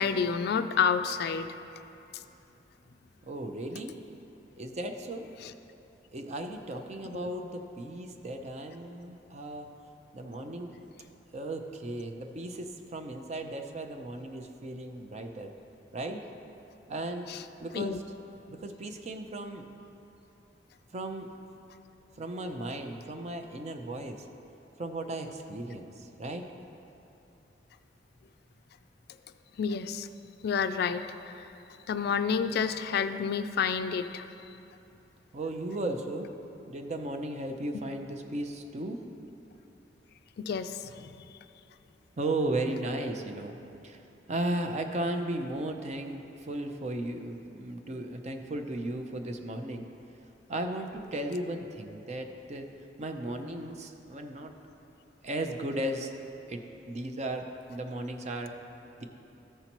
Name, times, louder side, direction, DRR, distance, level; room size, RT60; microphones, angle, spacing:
voice 1, 0.0-1.5 5.4-5.5 7.1-7.3 17.3-17.4 17.7-18.0 29.6-30.1 30.4-31.4 31.9-34.3 40.4-41.1, left 6 dB, 60° left, 10 dB, 0.3 m, -29 dB
voice 2, 3.2-4.0 4.6-5.3 6.1-9.7 10.1-10.7 11.3-15.5 15.9-16.3 16.9-17.3 17.6-18.0 18.5-19.6 20.9-21.3 22.2-24.3 24.8-26.5 35.3-36.3 36.6-39.0 42.2-43.6 43.8-44.0 44.3-49.9 50.5-54.5 55.2-56.1 56.5-58.5 59.0-59.1, right 1 dB, 40° right, 5 dB, 0.6 m, -35 dB
13.5 x 5.6 x 3.0 m, 2.8 s
head